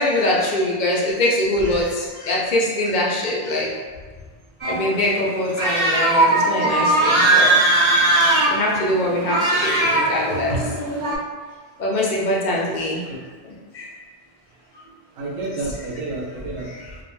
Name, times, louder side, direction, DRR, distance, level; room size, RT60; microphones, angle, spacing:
voice 1, 0.0-3.7 4.6-7.6 8.5-10.6 11.8-13.0 13.4-13.9 16.7-17.0, left 1 dB, 55° left, -3 dB, 0.5 m, -23 dB
sound 1, 4.6-11.2, right 2 dB, 40° right, 0.4 m, -19 dB
voice 2, 15.2-16.7, right 2 dB, 80° right, -2 dB, 0.9 m, -29 dB
2.2 x 2.1 x 3.0 m, 1.4 s
omnidirectional pair, 1.1 m